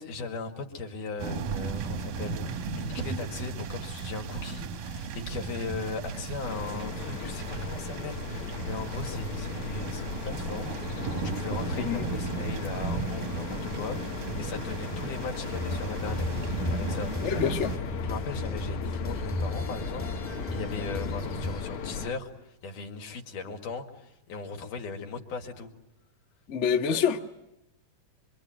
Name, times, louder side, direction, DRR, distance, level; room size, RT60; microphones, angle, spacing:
voice 1, 0.0-16.3 16.7-17.3 18.0-25.7, left 3 dB, 80° left, 3.7 m, -38 dB
sound 1, 1.2-17.8, right 5 dB, 85° right, 2.9 m, -36 dB
sound 2, 6.4-22.1, left 5 dB, 65° left, 2.7 m, -37 dB
voice 2, 11.8-12.1 17.2-17.8 26.5-27.2, left 7 dB, 35° left, 1.1 m, -26 dB
sound 3, 15.5-21.6, left 2 dB, 10° left, 0.9 m, -36 dB
25.5 x 25.0 x 9.2 m
omnidirectional pair, 3.6 m